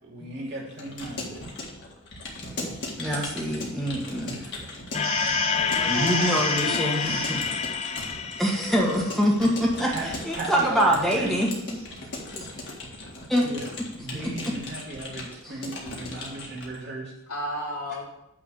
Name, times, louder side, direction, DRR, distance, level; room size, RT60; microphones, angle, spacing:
voice 1, 0.0-1.4 9.8-10.1 10.3-11.4 13.4-17.1, right 2 dB, 50° right, -5 dB, 3.0 m, -36 dB
Keyboard (musical) / Computer keyboard, 0.7-16.8, left 2 dB, 55° left, 1.8 m, -38 dB
voice 2, 3.0-4.4 5.8-7.4 8.4-11.8 12.3-12.4 13.3-13.4 15.4-15.5, equal, ahead, -2 dB, 1.5 m, -25 dB
sound 1, 4.9-9.4, left 6 dB, 30° left, 0.4 m, -28 dB
sound 2, 5.0-7.5 11.6-11.9, right 5 dB, 80° right, 1.3 m, -35 dB
voice 3, 5.5-7.0 17.3-18.1, left 1 dB, 85° left, -6 dB, 3.4 m, -34 dB
9.2 x 3.8 x 6.4 m, 0.84 s
head